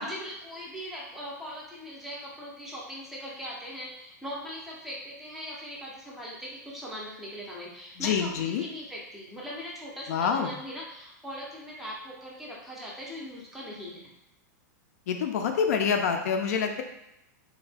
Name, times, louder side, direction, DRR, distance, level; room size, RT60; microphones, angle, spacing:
voice 1, 0.0-14.1, equal, 5° right, -5 dB, 0.5 m, -40 dB
voice 2, 8.0-8.6 10.1-10.5 15.1-16.8, left 6 dB, 60° left, 5 dB, 0.4 m, -26 dB
3.4 x 2.1 x 3.3 m, 0.86 s
supercardioid pair, 170°, 10 cm